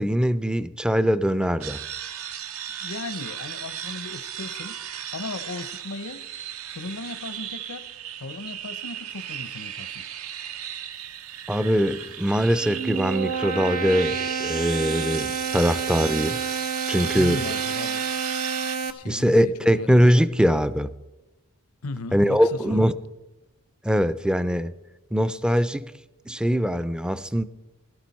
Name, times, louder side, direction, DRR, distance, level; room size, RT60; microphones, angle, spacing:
voice 1, 0.0-1.8 11.5-16.4 16.9-17.4 19.1-20.9 22.1-22.9 23.8-24.7 25.1-25.8 26.3-27.4, equal, 5° right, 0.4 m, -22 dB
sound 1, 1.6-18.8, right 10 dB, 70° right, 0.7 m, -36 dB
voice 2, 2.8-4.8 5.1-6.3 6.7-7.9 8.2-10.0 17.1-18.1 18.9-19.9 21.8-22.9, left 3 dB, 80° left, 0.8 m, -36 dB
sound 2, 12.4-18.9, right 6 dB, 90° right, 1.3 m, -29 dB
16.5 x 12.5 x 4.2 m
head